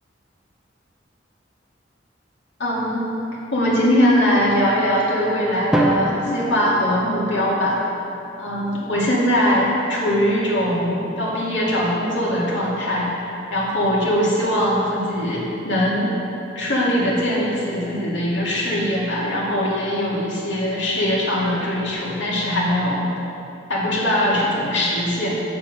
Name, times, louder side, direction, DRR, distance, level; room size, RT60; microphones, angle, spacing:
voice 1, 2.6-3.1 3.5-7.8 8.4-13.1 13.5-16.1 16.5-23.0 23.7-25.3, equal, 75° left, -6 dB, 2.5 m, -21 dB
Drum, 5.7-7.7, right 1 dB, 5° right, 0.6 m, -24 dB
7.7 x 7.3 x 6.3 m, 2.8 s
head